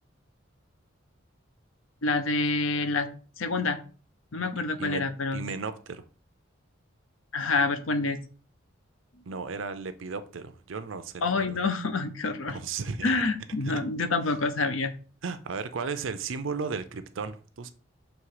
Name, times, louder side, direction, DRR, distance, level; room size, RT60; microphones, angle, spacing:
voice 1, 2.0-3.1 3.4-3.8 4.3-5.4 7.3-8.2 11.2-12.6 13.0-14.9, left 3 dB, 80° left, 0.8 m, -27 dB
voice 2, 5.3-6.0 9.3-11.6 12.5-13.2 13.6-13.7 15.2-17.7, right 5 dB, 75° right, 0.6 m, -35 dB
6.4 x 3.2 x 4.8 m
head